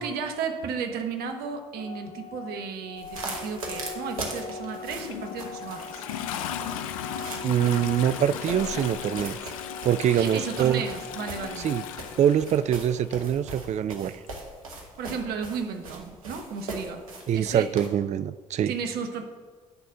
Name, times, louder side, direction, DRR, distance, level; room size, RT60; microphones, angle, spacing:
voice 1, 0.0-6.0 10.1-11.7 15.0-17.1 17.3-17.7 18.7-19.3, right 6 dB, 65° right, 6 dB, 1.1 m, -34 dB
Organ, 1.8-12.7, left 4 dB, 45° left, 1.2 m, -41 dB
sound 1, 3.0-17.9, right 2 dB, 90° right, 1.1 m, -40 dB
Toilet flush, 4.8-13.2 14.3-14.4, left 9 dB, 80° left, 0.5 m, -37 dB
voice 2, 7.4-9.5 9.8-10.8 11.6-11.8 12.2-14.2 17.3-18.7, right 9 dB, 40° right, 15 dB, 0.4 m, -24 dB
10.5 x 4.2 x 7.8 m, 1.5 s
hypercardioid pair, 45°, 17 cm